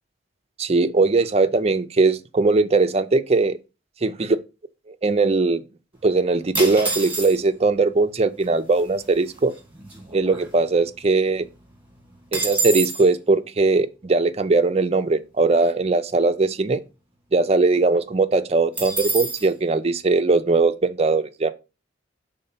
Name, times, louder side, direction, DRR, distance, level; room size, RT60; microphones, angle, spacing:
voice 1, 0.6-3.6 4.0-4.1 5.0-5.6 6.0-9.5 10.1-11.5 12.3-16.8 17.3-21.5, right 3 dB, 35° right, 0.5 m, -20 dB
sound 1, 6.5-7.6 8.4-8.5 8.7-9.1 9.5-11.0 11.3-11.4 11.7-13.1 18.8-19.5, right 3 dB, 10° right, 1.7 m, -27 dB
5.5 x 3.7 x 5.6 m
head